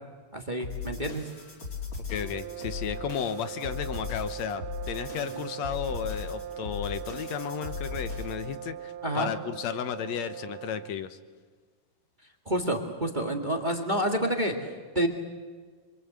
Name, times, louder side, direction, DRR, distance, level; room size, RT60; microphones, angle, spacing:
voice 1, 0.3-1.3 9.0-9.3 12.4-15.1, equal, 25° right, 3 dB, 1.1 m, -28 dB
sound 1, 0.6-8.5, left 5 dB, 35° left, 3.7 m, -38 dB
voice 2, 2.1-11.2, left 9 dB, 70° left, 11 dB, 1.7 m, -34 dB
sound 2, 2.1-11.1, right 10 dB, 75° right, 2.6 m, -40 dB
26.0 x 25.0 x 8.0 m, 1.5 s
omnidirectional pair, 4.2 m